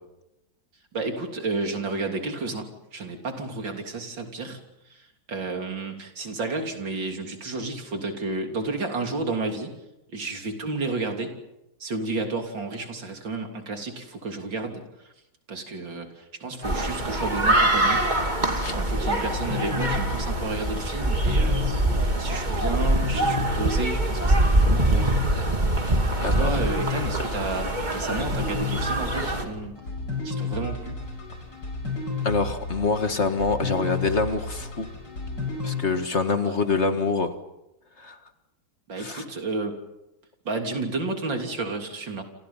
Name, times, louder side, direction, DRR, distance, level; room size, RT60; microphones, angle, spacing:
voice 1, 0.9-4.6 4.9-9.8 10.1-11.4 11.8-15.1 15.5-18.1 18.7-25.1 25.9-29.8 30.2-31.1 36.4-36.8 38.9-39.8 40.5-42.2, right 3 dB, 85° right, 4 dB, 3.9 m, -32 dB
sound 1, 16.6-29.4, right 1 dB, 25° right, 2.6 m, -24 dB
sound 2, 19.3-35.8, left 3 dB, 70° left, 5.8 m, -33 dB
voice 2, 26.2-26.6 32.2-34.9 35.6-37.3 38.0-38.2 39.0-39.2, left 4 dB, 40° left, 8 dB, 1.8 m, -25 dB
28.0 x 28.0 x 5.7 m, 0.89 s
omnidirectional pair, 2.0 m